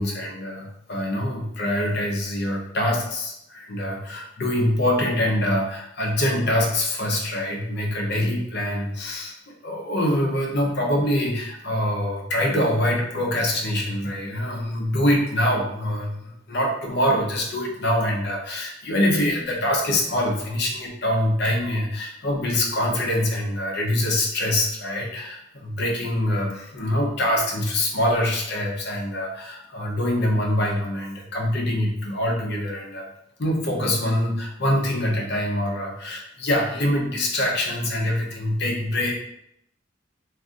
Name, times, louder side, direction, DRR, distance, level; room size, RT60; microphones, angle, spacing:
voice 1, 0.0-33.1 33.4-39.1, left 1 dB, 60° left, -1 dB, 0.7 m, -24 dB
2.5 x 2.5 x 3.6 m, 0.78 s
head